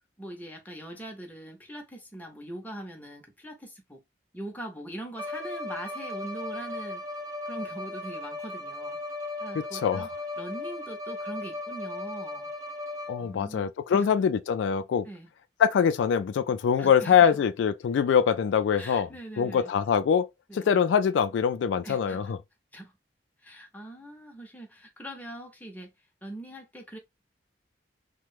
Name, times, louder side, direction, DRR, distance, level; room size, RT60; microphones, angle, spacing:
voice 1, 0.2-4.0 4.3-7.0 7.5-9.0 9.4-10.1 10.4-12.5 13.2-14.1 15.0-15.3 16.8-17.4 18.8-19.7 20.5-20.7 21.8-22.2 22.7-22.9 23.4-25.9 26.2-27.0, right 1 dB, 10° left, 0.7 m, -41 dB
Bowed string instrument, 5.1-13.4, left 2 dB, 20° right, 0.4 m, -37 dB
voice 2, 9.5-10.1 13.1-15.1 15.6-19.1 19.4-20.3 20.5-22.4, left 7 dB, 80° left, 0.3 m, -24 dB
3.0 x 2.2 x 3.2 m
head